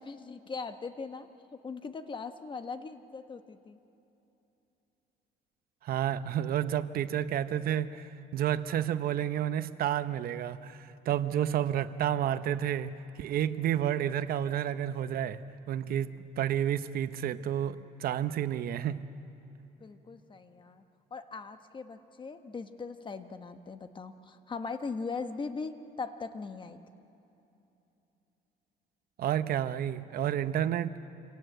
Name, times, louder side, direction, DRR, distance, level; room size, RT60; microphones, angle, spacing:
voice 1, 0.0-3.8 19.8-20.8 21.1-26.8, left 4 dB, 30° left, 9 dB, 1.2 m, -40 dB
voice 2, 5.8-19.1 29.2-31.0, right 10 dB, 60° right, 12 dB, 0.9 m, -30 dB
27.0 x 18.0 x 8.0 m, 3.0 s
cardioid pair, 110°, 17 cm